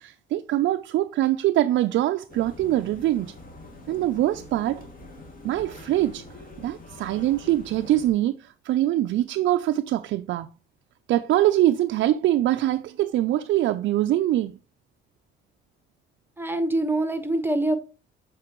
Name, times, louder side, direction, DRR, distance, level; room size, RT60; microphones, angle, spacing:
voice 1, 0.0-3.3 3.9-4.8 5.4-6.2 6.6-10.5 11.1-14.6, right 13 dB, 70° right, 0.4 m, -23 dB
sound 1, 2.3-8.1, left 2 dB, 45° left, 2.3 m, -44 dB
voice 2, 16.4-17.8, right 1 dB, 10° right, 1.1 m, -24 dB
7.7 x 4.5 x 3.0 m
cardioid pair, 90°, 20 cm